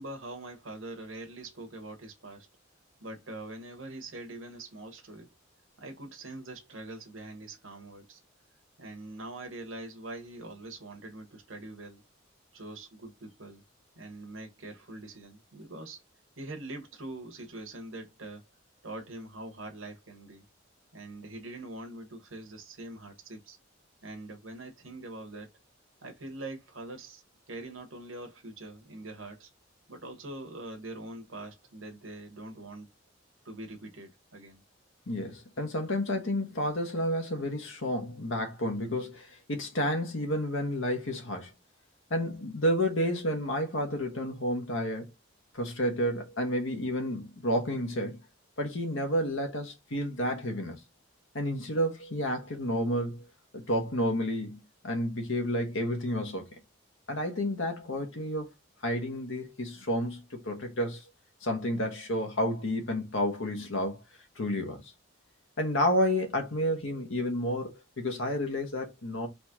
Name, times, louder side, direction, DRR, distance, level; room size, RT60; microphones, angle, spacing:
voice 1, 0.0-2.5 3.0-5.3 5.8-8.2 8.8-12.0 12.5-13.6 14.0-16.0 16.4-18.4 18.8-20.4 20.9-23.6 24.0-25.5 26.0-29.5 29.9-32.9 33.4-34.6, right 2 dB, 75° right, 1.0 m, -43 dB
voice 2, 35.1-41.5 42.1-45.0 45.5-48.2 48.6-50.8 51.3-53.2 53.5-56.5 57.1-58.5 58.8-61.0 61.4-64.0 64.3-64.8 65.6-69.3, equal, 75° left, 1.4 m, -30 dB
4.0 x 3.1 x 3.7 m
head